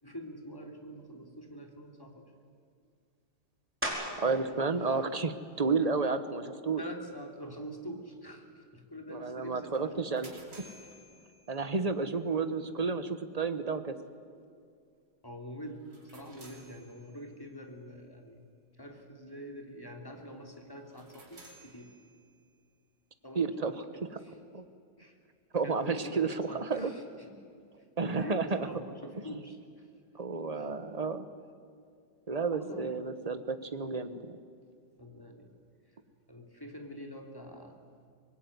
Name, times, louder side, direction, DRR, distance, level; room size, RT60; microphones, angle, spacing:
voice 1, 0.0-2.3 4.2-4.5 4.8-5.0 6.8-10.3 15.2-18.4 18.8-21.9 23.2-24.4 25.0-25.2 25.6-27.4 28.2-29.9 30.3-30.7 32.5-33.0 35.0-35.5 36.3-37.8, equal, 10° left, 3 dB, 3.0 m, -45 dB
sound 1, 3.8-4.4 5.0-9.4 9.9-15.1 15.4-21.0, equal, 5° right, 4.7 m, -46 dB
voice 2, 4.2-6.8 9.1-10.3 11.5-13.9 23.3-23.8 24.5-24.6 25.5-26.9 28.0-28.6 30.1-31.3 32.3-34.4, right 4 dB, 25° right, 11 dB, 1.1 m, -31 dB
sound 2, 9.7-12.0 15.8-17.4 20.8-22.6, right 1 dB, 80° right, 5.0 m, -56 dB
24.5 x 21.0 x 9.6 m, 2.3 s
omnidirectional pair, 1.9 m